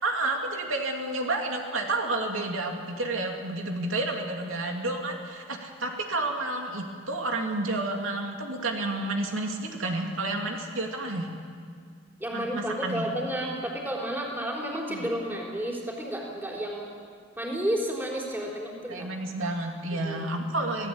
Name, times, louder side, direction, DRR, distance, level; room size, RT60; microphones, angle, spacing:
voice 1, 0.0-11.3 12.3-13.1 14.9-15.1 18.9-20.9, right 2 dB, 80° right, 2 dB, 2.7 m, -30 dB
voice 2, 12.2-16.9 17.4-19.1 19.4-19.5 20.0-20.3, equal, 10° right, -2 dB, 4.0 m, -31 dB
27.5 x 17.0 x 8.7 m, 2.1 s
head